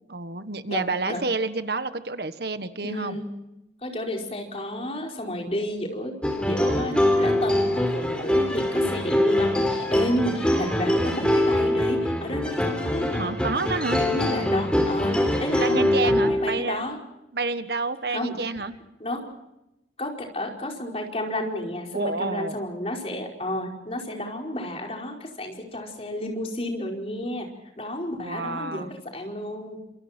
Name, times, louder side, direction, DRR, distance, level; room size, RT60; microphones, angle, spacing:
voice 1, 0.1-3.2 13.1-14.0 15.6-16.9 17.3-18.7 21.9-22.5 28.2-28.9, right 3 dB, 65° right, 10 dB, 1.4 m, -29 dB
voice 2, 0.7-1.2 2.8-3.3 3.8-13.3 14.0-17.0 18.1-18.3 19.0-19.3 20.0-27.5 27.8-29.8, left 1 dB, 35° left, 1 dB, 5.0 m, -31 dB
sound 1, 6.2-16.7, left 1 dB, 5° left, 4.0 m, -23 dB
29.5 x 28.0 x 4.5 m, 0.90 s
head